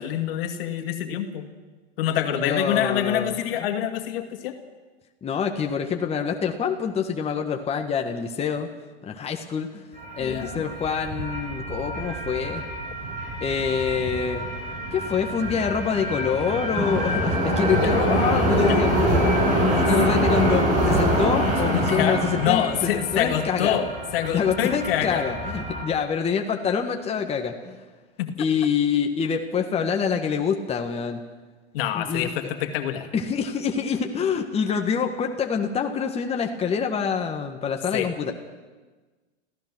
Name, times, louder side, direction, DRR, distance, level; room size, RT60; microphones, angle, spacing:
voice 1, 0.0-1.5 2.0-4.6 10.2-10.6 17.7-17.9 18.6-18.8 21.7-25.3 28.2-28.5 31.7-33.1 37.9-38.1, left 10 dB, 60° left, 6 dB, 2.3 m, -26 dB
voice 2, 2.3-3.4 5.2-8.7 9.0-9.8 10.1-12.6 13.4-14.5 14.9-23.8 24.3-27.8 28.4-31.2 31.9-32.5 33.1-38.3, left 6 dB, 20° left, 3 dB, 1.6 m, -26 dB
sound 1, 10.0-25.8, equal, 25° right, 7.5 m, -25 dB
26.0 x 15.5 x 6.3 m, 1.3 s
hypercardioid pair, 120°, 32 cm